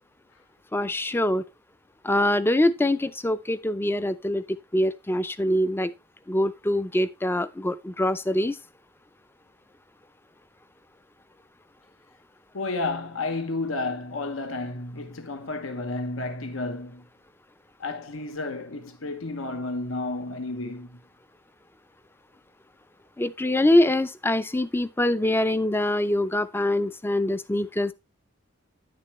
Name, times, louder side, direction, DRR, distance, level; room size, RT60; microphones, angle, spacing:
voice 1, 0.7-1.4 2.0-4.4 4.7-5.9 6.3-8.6 23.2-27.9, left 1 dB, 10° left, 0.5 m, -24 dB
voice 2, 12.5-17.0 17.8-21.0, left 2 dB, 75° left, 1.1 m, -31 dB
9.9 x 6.9 x 3.1 m
head